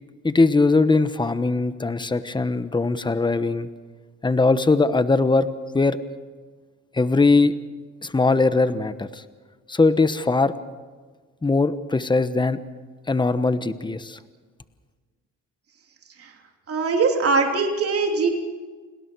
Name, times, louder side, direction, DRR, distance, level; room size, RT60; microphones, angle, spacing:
voice 1, 0.2-3.7 4.2-5.5 5.7-6.0 6.9-7.5 8.0-9.2 9.7-10.5 11.4-12.6 13.1-14.2, left 3 dB, 15° left, 12 dB, 1.1 m, -20 dB
voice 2, 16.7-18.3, right 4 dB, 50° right, 2 dB, 3.2 m, -21 dB
29.0 x 19.5 x 4.7 m, 1.5 s
cardioid pair, 90°, 30 cm